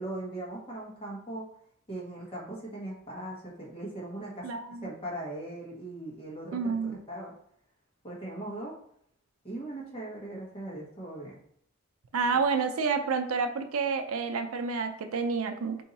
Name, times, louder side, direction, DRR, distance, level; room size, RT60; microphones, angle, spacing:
voice 1, 0.0-1.5 1.9-4.5 4.8-7.3 8.0-8.8 9.4-11.4, right 1 dB, 25° left, -4 dB, 1.4 m, -39 dB
voice 2, 4.4-4.9 6.5-7.0 12.1-15.8, right 5 dB, 75° right, 7 dB, 0.5 m, -29 dB
4.5 x 2.8 x 4.1 m, 0.69 s
head